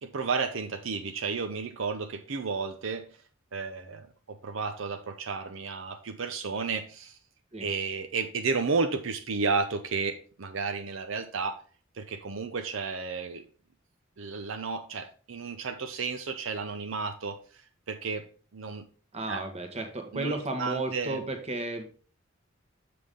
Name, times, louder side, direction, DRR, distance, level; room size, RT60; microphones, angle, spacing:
voice 1, 0.0-3.1 3.5-7.2 7.6-11.6 11.9-13.4 14.2-17.6 17.9-18.3 18.5-18.8 19.3-19.4 20.1-21.2, right 4 dB, 80° right, 0.6 m, -32 dB
voice 2, 19.1-21.9, right 2 dB, 35° right, 1.3 m, -33 dB
6.8 x 5.8 x 3.7 m
head